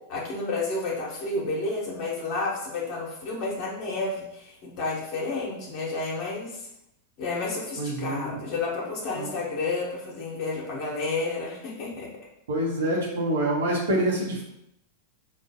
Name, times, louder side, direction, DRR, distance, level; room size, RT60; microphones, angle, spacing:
voice 1, 0.1-6.7 7.2-12.1, left 3 dB, 50° left, -3 dB, 1.0 m, -31 dB
voice 2, 7.8-8.4 9.2-9.3 12.5-14.4, right 1 dB, 80° right, -3 dB, 1.0 m, -26 dB
4.1 x 2.4 x 2.7 m, 0.82 s
hypercardioid pair, 105°, 0 cm